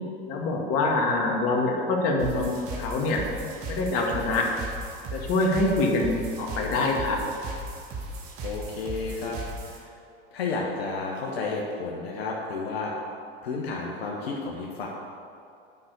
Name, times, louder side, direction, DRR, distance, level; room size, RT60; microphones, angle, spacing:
voice 1, 0.3-2.5 2.8-3.2 3.7-4.5 5.1-7.2, left 2 dB, 50° left, 0 dB, 2.0 m, -25 dB
sound 1, 2.2-9.8, right 2 dB, 45° right, 2.1 m, -37 dB
voice 2, 8.4-9.4 9.6-9.9 10.3-12.9 13.4-14.9, left 4 dB, 80° left, -2 dB, 1.4 m, -31 dB
9.3 x 6.0 x 6.8 m, 2.5 s
hypercardioid pair, 90°, 30 cm